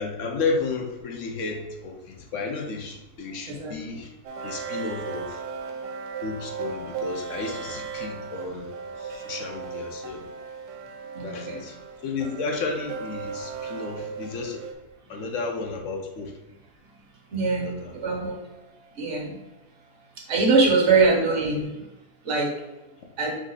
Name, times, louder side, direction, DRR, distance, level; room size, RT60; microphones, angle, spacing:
voice 1, 0.0-4.1 4.4-5.4 6.2-8.7 9.0-10.3 11.2-11.8 12.0-14.6 15.1-16.3 17.4-17.9, left 4 dB, 60° left, 2 dB, 0.9 m, -32 dB
voice 2, 3.5-4.0 11.1-11.7 17.3-17.7 18.0-18.4 19.0-19.4 20.3-21.7 22.2-22.5 23.2-23.4, right 4 dB, 50° right, -2 dB, 1.4 m, -23 dB
sound 1, 4.2-14.7, right 5 dB, 80° right, 1.1 m, -36 dB
4.9 x 2.7 x 3.8 m, 1.0 s
omnidirectional pair, 1.7 m